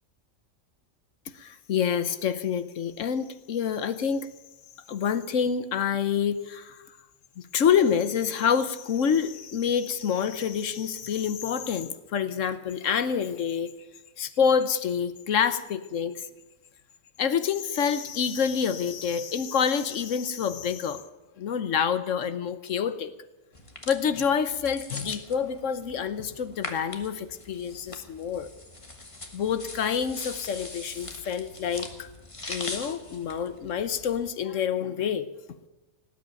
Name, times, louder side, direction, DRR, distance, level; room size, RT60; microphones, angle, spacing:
voice 1, 1.3-4.3 4.9-6.8 7.4-13.7 14.2-16.3 17.2-21.0 21.4-23.1 23.9-28.5 29.3-32.1 32.5-35.3, left 7 dB, 70° left, 12 dB, 1.2 m, -27 dB
sound 1, 23.5-34.3, left 2 dB, 25° left, 1.5 m, -41 dB
18.5 x 8.4 x 9.0 m, 1.1 s
omnidirectional pair, 1.4 m